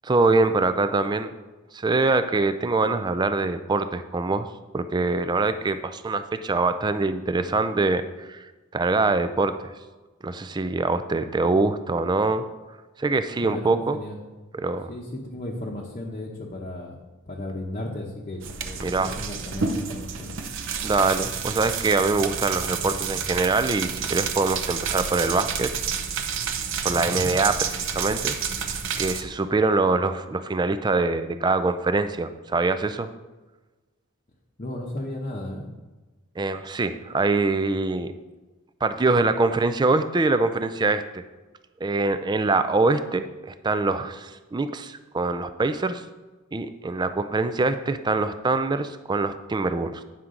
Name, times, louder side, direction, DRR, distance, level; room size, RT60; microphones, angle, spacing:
voice 1, 0.0-1.3 1.7-4.5 4.7-8.4 8.7-9.5 10.2-12.5 13.0-14.0 14.5-14.9 18.8-19.2 20.8-25.7 26.8-28.4 29.0-33.1 36.4-38.1 38.8-41.2 41.8-46.0 46.5-50.0, right 3 dB, 20° right, 11 dB, 0.3 m, -24 dB
voice 2, 13.3-14.2 14.9-17.0 17.3-20.4 26.9-27.3 34.6-35.7, left 1 dB, 35° left, -2 dB, 0.8 m, -35 dB
sound 1, 18.4-29.2, right 6 dB, 60° right, 0.7 m, -29 dB
9.5 x 5.8 x 3.8 m, 1.2 s
head